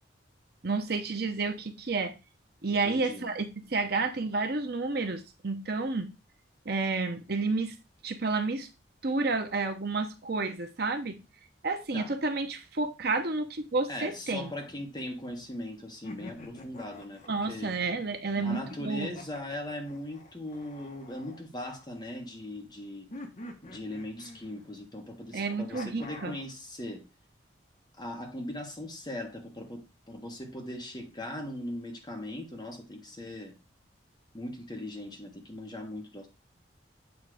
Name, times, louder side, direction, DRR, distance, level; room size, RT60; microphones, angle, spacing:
voice 1, 0.6-2.1 2.6-6.1 6.7-7.8 8.0-8.7 9.0-11.2 11.6-14.5 17.3-19.1 25.3-26.3, right 3 dB, 55° right, 0.8 m, -30 dB
voice 2, 2.7-3.3 11.9-12.1 13.9-17.7 18.4-23.1 23.6-27.0 28.0-33.5 34.3-36.3, left 1 dB, 20° left, 1.5 m, -39 dB
sound 1, 14.4-15.5 16.0-17.7 18.4-22.1 23.1-24.9 25.7-26.5, left 1 dB, 40° left, 1.2 m, -47 dB
8.3 x 3.2 x 4.9 m
head